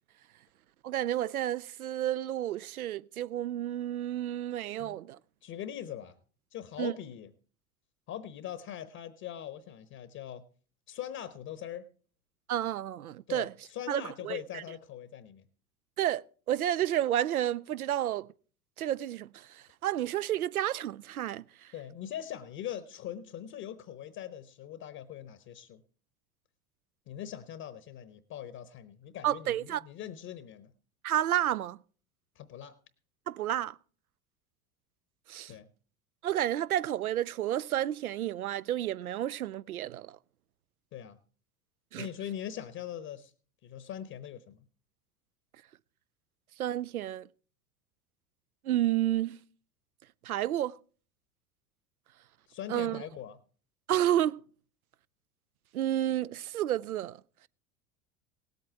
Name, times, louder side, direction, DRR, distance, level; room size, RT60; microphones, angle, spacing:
voice 1, 0.8-5.2 6.8-6.9 12.5-13.5 13.9-14.6 16.0-18.3 18.8-21.7 29.2-29.8 31.0-31.8 33.3-33.8 35.3-35.5 36.2-40.2 41.9-42.1 46.6-47.3 48.6-49.4 50.2-50.8 52.7-53.1 53.9-54.4 55.7-57.2, right 12 dB, 80° right, 0.5 m, -31 dB
voice 2, 5.4-6.2 6.5-7.3 8.1-10.4 10.9-11.9 13.3-15.4 21.7-25.8 27.1-30.7 32.3-32.8 35.5-35.7 40.9-41.2 42.0-43.3 43.6-44.6 52.5-53.4, left 10 dB, 40° left, 1.0 m, -41 dB
18.0 x 8.1 x 4.5 m
figure-of-eight pair, 75°, 43 cm